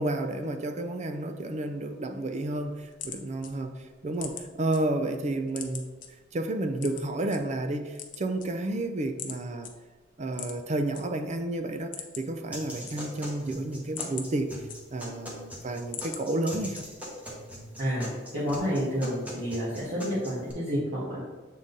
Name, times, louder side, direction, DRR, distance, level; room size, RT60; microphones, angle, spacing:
voice 1, 0.0-3.7 4.0-5.9 6.3-9.7 10.2-14.5 14.9-16.8, right 2 dB, 40° right, 7 dB, 0.4 m, -31 dB
sound 1, 2.8-4.8 5.2-6.1 6.8-7.4 7.8-8.8 9.2-9.4 9.6-9.7 10.3-11.0 11.4-11.5 11.8-12.4 12.7-13.3 13.7-15.2 15.6-16.2 16.7-17.2, left 8 dB, 45° left, 0.7 m, -41 dB
sound 2, 12.5-20.5, equal, 10° right, 1.2 m, -42 dB
voice 2, 18.3-21.2, equal, 65° right, -9 dB, 1.6 m, -29 dB
7.4 x 3.8 x 4.0 m, 1.3 s
head